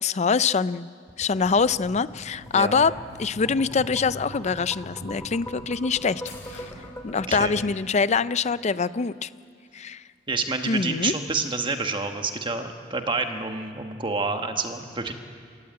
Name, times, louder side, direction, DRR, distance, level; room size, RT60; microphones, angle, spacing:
voice 1, 0.0-0.9 1.2-2.9 3.2-6.2 6.5-6.7 7.0-9.3 9.7-10.0 10.7-11.1, left 5 dB, 40° left, 16 dB, 0.5 m, -24 dB
sound 1, 1.1-7.6, equal, 15° left, 2.0 m, -43 dB
sound 2, 1.4-7.4, left 1 dB, 75° left, 5.8 m, -44 dB
voice 2, 2.5-2.8 7.3-7.6 10.3-15.1, right 3 dB, 25° right, 5 dB, 1.4 m, -28 dB
27.0 x 14.5 x 8.7 m, 2.2 s
head